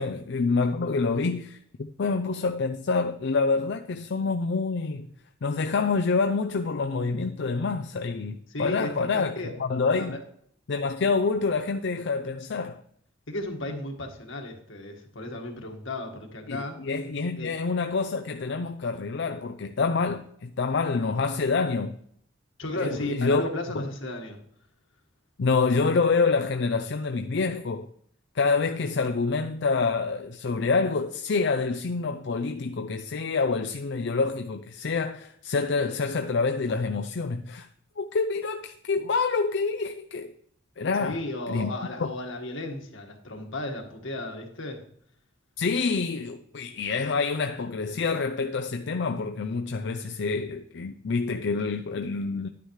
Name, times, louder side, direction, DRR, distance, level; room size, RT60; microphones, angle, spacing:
voice 1, 0.0-5.1 5.4-9.3 9.6-10.2 10.7-12.8 16.5-21.9 22.8-23.4 23.8-23.9 25.4-27.9 28.3-37.7 38.0-40.3 40.8-41.2 41.5-41.7 42.0-42.1 45.6-52.5, left 4 dB, 60° left, 0.5 m, -27 dB
voice 2, 8.5-9.5 10.0-10.1 13.3-16.8 17.4-17.5 22.6-24.4 41.0-44.8, left 1 dB, 80° left, 1.7 m, -34 dB
11.0 x 9.6 x 3.2 m
head